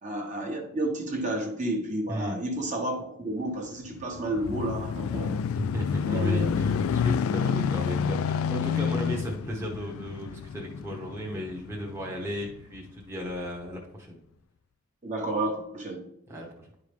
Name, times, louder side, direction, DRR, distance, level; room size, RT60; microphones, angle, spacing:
voice 1, 0.0-5.4 6.0-6.6 7.8-7.9 15.0-16.0 16.3-16.4, right 1 dB, 35° right, 1 dB, 1.2 m, -31 dB
voice 2, 2.1-2.4 5.5-14.2 16.3-16.7, equal, 10° right, -3 dB, 1.0 m, -35 dB
sound 1, 3.8-12.6 13.3-13.4, left 6 dB, 70° left, 0.3 m, -29 dB
10.5 x 4.8 x 3.4 m, 0.75 s
head